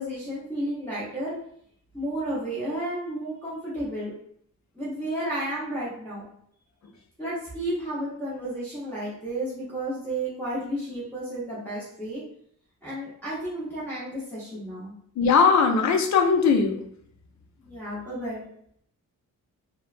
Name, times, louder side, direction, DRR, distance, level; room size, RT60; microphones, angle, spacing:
voice 1, 0.0-1.4 1.9-4.1 4.7-6.3 7.2-12.2 12.8-14.9 17.6-18.5, right 1 dB, 5° left, -11 dB, 0.8 m, -32 dB
voice 2, 15.2-16.8, left 5 dB, 55° left, 4 dB, 0.4 m, -19 dB
3.0 x 2.1 x 2.4 m, 0.65 s
wide cardioid pair, 165°, 35 cm